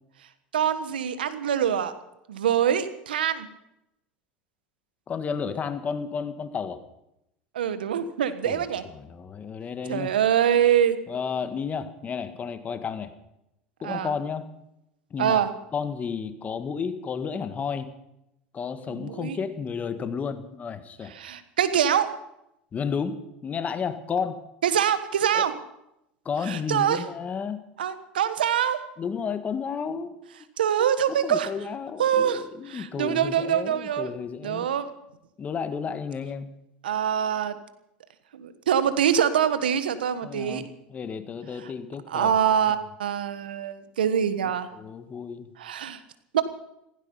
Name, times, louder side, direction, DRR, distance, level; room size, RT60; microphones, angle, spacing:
voice 1, 0.5-1.9 2.3-3.5 7.5-8.8 9.9-11.0 13.8-14.1 15.2-15.5 18.9-19.4 21.1-22.1 24.6-25.5 26.5-27.0 27.8-28.8 30.6-31.5 32.0-32.4 32.7-34.1 34.4-34.9 36.8-37.6 38.3-40.6 41.6-41.7 42.1-44.7 45.6-46.0 46.3-46.4, right 9 dB, 85° right, 12 dB, 1.3 m, -24 dB
voice 2, 5.1-6.8 8.4-8.6 8.9-10.1 11.1-13.1 13.8-14.5 15.1-15.5 15.7-17.9 18.5-21.1 22.7-24.4 25.3-25.5 26.2-27.6 29.0-30.1 31.1-34.7 35.4-36.5 40.2-42.4 44.7-45.5, left 6 dB, 30° left, 9 dB, 1.7 m, -32 dB
16.5 x 15.5 x 5.6 m, 0.84 s
hypercardioid pair, 90°, 5 cm